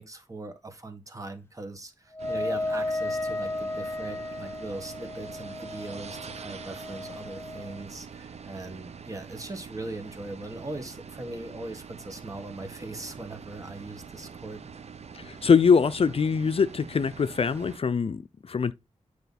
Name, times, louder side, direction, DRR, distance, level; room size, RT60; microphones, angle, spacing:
voice 1, 0.0-14.7, right 2 dB, 30° right, 1.6 m, -40 dB
Wind instrument woodwind instrument, 2.1-7.8, left 2 dB, 20° left, 0.9 m, -34 dB
sound 1, 2.2-17.8, right 6 dB, 65° right, 0.7 m, -44 dB
voice 2, 15.1-18.7, left 6 dB, 55° left, 0.5 m, -23 dB
9.3 x 4.9 x 4.1 m
wide cardioid pair, 120°, 12 cm